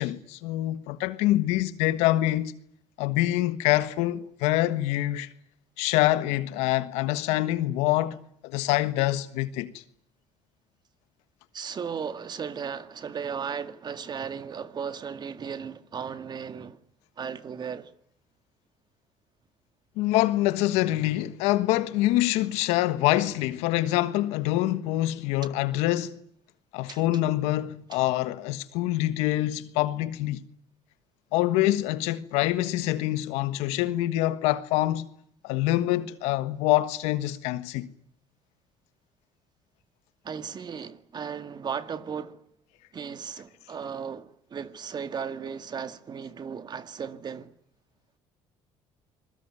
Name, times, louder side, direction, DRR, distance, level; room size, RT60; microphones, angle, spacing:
voice 1, 0.0-2.5 3.0-5.3 5.8-9.8 20.0-26.2 26.7-30.4 31.3-35.1 35.4-37.9, left 15 dB, 90° left, 1.4 m, -25 dB
voice 2, 11.5-16.8 17.2-17.9 26.9-27.0 27.9-28.0 40.2-42.4 42.9-47.5, right 6 dB, 40° right, 1.9 m, -36 dB
26.5 x 21.5 x 9.9 m
supercardioid pair, 90°, 11 cm